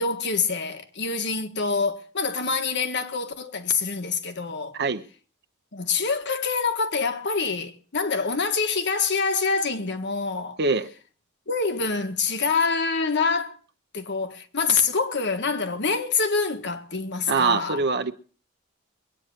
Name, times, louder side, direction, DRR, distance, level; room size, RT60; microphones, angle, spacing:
voice 1, 0.0-4.8 5.7-10.6 11.5-13.6 13.9-17.8, left 4 dB, 55° left, 1.7 m, -26 dB
voice 2, 17.3-18.1, right 4 dB, 55° right, 1.0 m, -23 dB
22.5 x 9.2 x 6.5 m
head